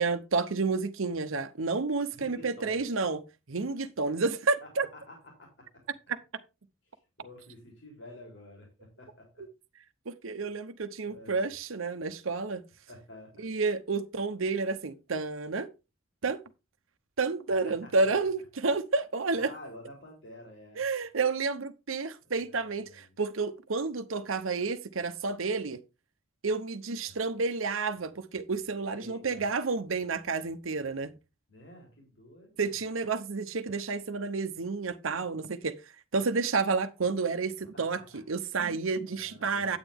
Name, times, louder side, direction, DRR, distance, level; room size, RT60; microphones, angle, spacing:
voice 1, 0.0-3.2 3.5-4.9 10.1-12.6 13.4-15.7 16.2-16.4 17.2-19.5 20.8-25.8 26.4-31.1 32.6-35.8 36.1-39.8, right 4 dB, 85° right, 0.8 m, -30 dB
voice 2, 2.1-2.8 4.6-5.8 6.9-9.4 11.1-11.4 12.9-13.5 17.6-18.3 19.3-20.8 22.2-23.1 27.0-27.2 28.8-29.4 31.5-32.8 37.7-38.2 39.1-39.8, left 1 dB, 65° left, 3.6 m, -50 dB
9.0 x 8.7 x 3.6 m
head